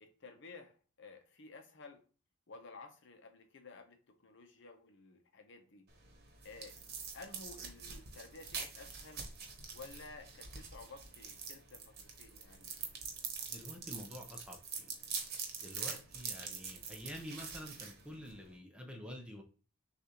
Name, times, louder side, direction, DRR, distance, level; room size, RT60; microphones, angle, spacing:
voice 1, 0.0-2.0 2.5-5.9 6.4-6.8 7.1-9.3 9.7-12.7 15.7-16.0, left 3 dB, 55° left, 5 dB, 0.7 m, -54 dB
sound 1, 5.9-18.6, right 5 dB, 45° right, 1.1 m, -45 dB
voice 2, 13.5-14.9 15.6-19.4, equal, 5° right, 2 dB, 0.6 m, -48 dB
6.5 x 2.5 x 2.9 m, 0.37 s
head